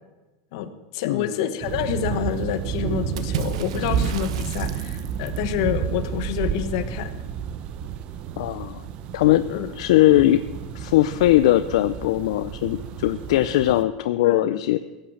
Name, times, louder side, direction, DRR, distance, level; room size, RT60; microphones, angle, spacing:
voice 1, 0.5-7.2 9.5-9.7 14.2-14.6, left 10 dB, 60° left, 9 dB, 1.3 m, -28 dB
voice 2, 1.0-1.4 8.4-8.8 9.1-10.4 10.7-14.8, left 14 dB, 75° left, 11 dB, 0.5 m, -20 dB
sound 1, 1.6-13.8, right 8 dB, 35° right, 0.7 m, -30 dB
Water / Splash splatter, 3.2-5.5, right 9 dB, 85° right, 0.9 m, -35 dB
16.0 x 8.9 x 7.3 m, 1.1 s
supercardioid pair, 170°, 3 cm